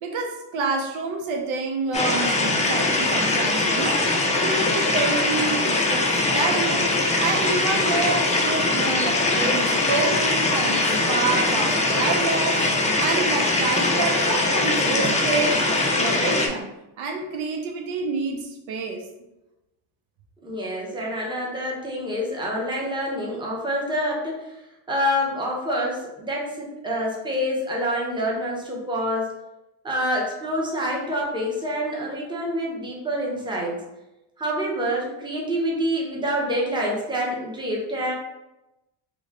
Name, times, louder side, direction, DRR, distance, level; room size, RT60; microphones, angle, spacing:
voice 1, 0.0-12.6 13.0-16.7 17.0-19.1, right 4 dB, 75° right, 2 dB, 0.7 m, -28 dB
sound 1, 1.9-16.5, left 2 dB, 15° left, 0.4 m, -22 dB
voice 2, 20.4-24.5 24.9-29.3 29.8-33.8 34.4-38.1, equal, 10° right, -3 dB, 0.8 m, -27 dB
3.0 x 2.2 x 3.7 m, 0.96 s
cardioid pair, 95°, 48 cm